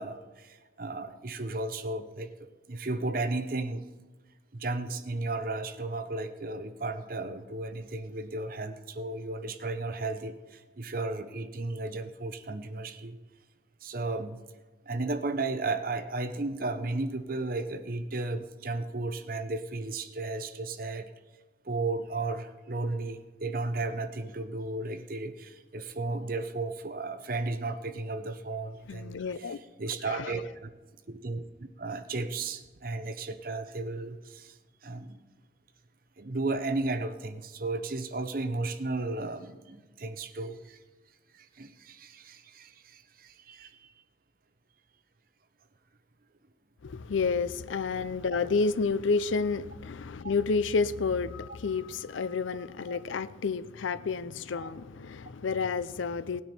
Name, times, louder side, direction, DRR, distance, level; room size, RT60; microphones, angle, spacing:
voice 1, 0.0-3.9 4.5-13.2 13.8-14.4 14.9-21.1 21.6-30.7 31.1-34.6 34.8-35.2 36.2-40.8 41.3-43.9 52.9-53.0 54.6-54.7, right 2 dB, 50° right, 9 dB, 0.8 m, -34 dB
voice 2, 28.9-29.6 30.1-30.3 46.8-56.4, left 4 dB, 90° left, 16 dB, 0.5 m, -30 dB
18.0 x 9.5 x 4.4 m, 1.2 s
head